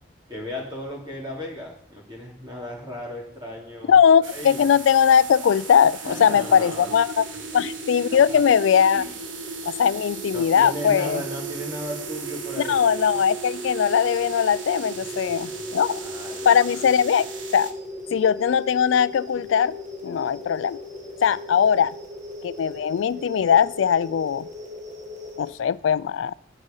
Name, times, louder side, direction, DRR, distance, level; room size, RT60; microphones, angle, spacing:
voice 1, 0.3-4.0 4.2-4.6 6.0-6.9 8.1-8.4 8.9-9.1 9.4-9.6 10.3-13.2 15.0-15.2 15.4-16.8 21.0-21.7, equal, 25° right, -2 dB, 3.4 m, -36 dB
voice 2, 3.9-7.3 7.5-9.0 9.7-11.2 12.7-16.0 16.5-17.3 17.5-17.7 18.1-19.7 20.0-20.8 21.2-21.9 22.4-24.5 25.4-26.3, left 8 dB, 80° left, 18 dB, 0.3 m, -20 dB
sound 1, 4.2-17.7, right 5 dB, 90° right, 1.4 m, -39 dB
sound 2, 6.0-25.5, right 1 dB, 40° right, 1.5 m, -37 dB
12.0 x 6.6 x 5.5 m, 0.67 s
head